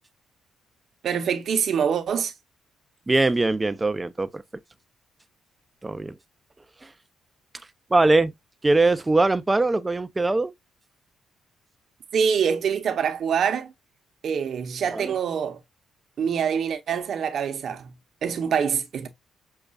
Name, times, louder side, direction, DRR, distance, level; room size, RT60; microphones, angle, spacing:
voice 1, 1.0-2.3 12.1-13.7 14.2-15.6 16.2-17.9 18.2-19.1, right 7 dB, 60° right, 0.8 m, -25 dB
voice 2, 3.1-4.4 5.8-6.2 6.8-6.9 7.9-8.3 8.6-10.5 14.9-15.1, right 2 dB, 20° right, 0.4 m, -21 dB
6.4 x 2.4 x 2.3 m
cardioid pair, 90°, 0 cm